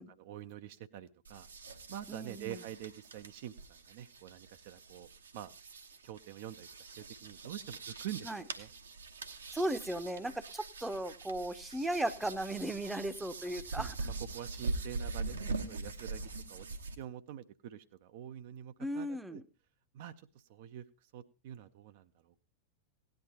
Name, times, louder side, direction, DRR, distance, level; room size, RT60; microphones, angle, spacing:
voice 1, 0.2-1.5 1.9-5.1 5.3-5.5 6.0-8.7 13.7-16.7 17.0-19.4 19.9-20.8 21.1-22.4, right 11 dB, 50° right, 9 dB, 0.6 m, -46 dB
sound 1, 1.2-17.0, right 3 dB, 70° right, 1.0 m, -43 dB
voice 2, 2.1-2.6 8.2-8.4 9.5-14.0 18.8-19.4, right 1 dB, 5° right, 11 dB, 0.8 m, -36 dB
17.0 x 10.5 x 2.9 m, 0.32 s
figure-of-eight pair, 90°, 0 cm